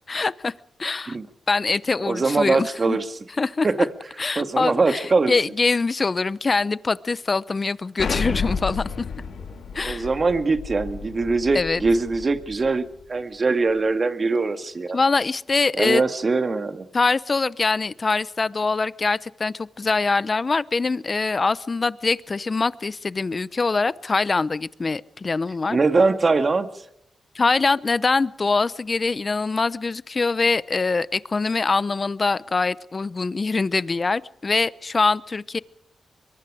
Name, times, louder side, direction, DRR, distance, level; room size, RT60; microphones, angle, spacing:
voice 1, 0.1-0.5 0.8-1.2 1.5-3.0 3.4-3.7 4.2-9.0 9.7-10.1 11.5-11.8 14.9-16.0 16.9-25.8 27.3-35.6, left 4 dB, 40° left, 18 dB, 0.8 m, -23 dB
voice 2, 2.0-3.1 3.6-3.9 4.4-5.3 9.8-15.0 15.8-16.9 25.7-26.8, right 3 dB, 45° right, 9 dB, 2.0 m, -22 dB
Explosion, 8.0-12.7, left 5 dB, 90° left, 3.5 m, -31 dB
23.5 x 23.0 x 5.0 m, 0.72 s
cardioid pair, 65°, 0 cm